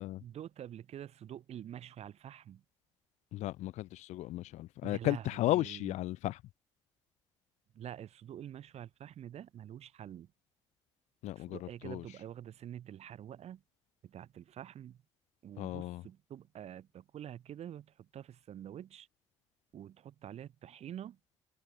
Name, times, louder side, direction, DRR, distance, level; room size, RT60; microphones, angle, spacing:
voice 1, 0.2-2.6 4.8-5.9 7.7-10.3 11.4-13.6 14.0-15.0 15.4-19.1 19.7-21.2, right 10 dB, 55° right, 3.4 m, -47 dB
voice 2, 3.3-6.4 11.2-12.0 15.6-16.0, left 16 dB, 60° left, 1.3 m, -35 dB
figure-of-eight pair, 45°, 13 cm